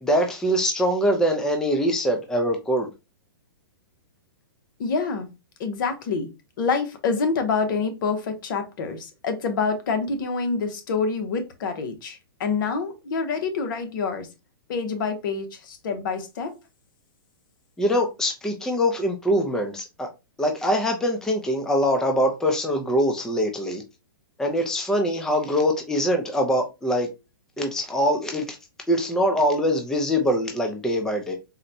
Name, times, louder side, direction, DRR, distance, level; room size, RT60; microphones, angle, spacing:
voice 1, 0.0-2.9 17.8-20.1 20.4-23.8 24.4-27.1 27.6-28.6 28.9-31.4, equal, 5° left, 0.5 m, -23 dB
voice 2, 4.8-5.3 5.6-6.3 6.6-14.3 14.7-16.5, left 4 dB, 60° left, 0.9 m, -27 dB
4.0 x 2.1 x 2.7 m
hypercardioid pair, 130°, 12 cm